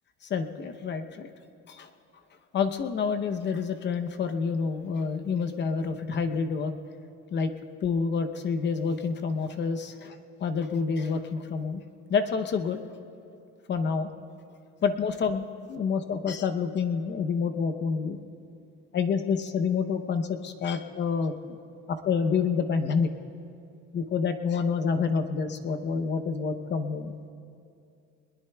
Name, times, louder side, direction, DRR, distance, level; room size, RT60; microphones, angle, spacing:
voice 1, 0.3-1.3 1.7-1.9 2.5-6.7 7.3-7.5 7.8-10.2 10.4-11.8 12.1-12.8 13.7-14.1 14.8-18.2 18.9-21.6 21.9-23.1 23.9-27.3, left 5 dB, 35° left, 8 dB, 0.7 m, -28 dB
22.5 x 21.0 x 2.3 m, 2.5 s
cardioid pair, 150°, 30 cm